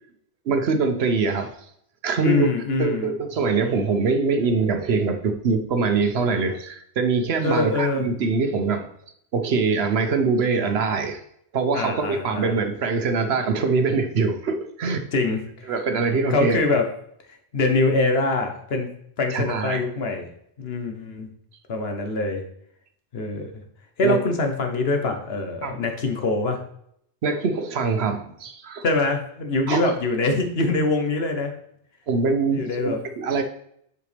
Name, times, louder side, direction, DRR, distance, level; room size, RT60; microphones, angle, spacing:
voice 1, 0.5-1.5 2.0-2.5 2.8-8.9 9.3-11.2 11.5-15.0 15.7-16.6 19.3-19.8 24.0-24.2 25.6-25.8 27.2-28.8 29.7-29.8 32.1-33.4, right 4 dB, 70° right, 6 dB, 1.0 m, -23 dB
voice 2, 2.2-3.1 7.4-8.1 11.7-12.6 15.1-15.7 16.3-16.9 17.5-18.9 19.2-20.3 20.6-21.3 21.7-22.4 23.1-23.5 24.0-26.6 28.8-31.5 32.5-33.0, left 3 dB, 65° left, 4 dB, 1.2 m, -24 dB
7.9 x 4.9 x 3.3 m, 0.71 s
omnidirectional pair, 1.1 m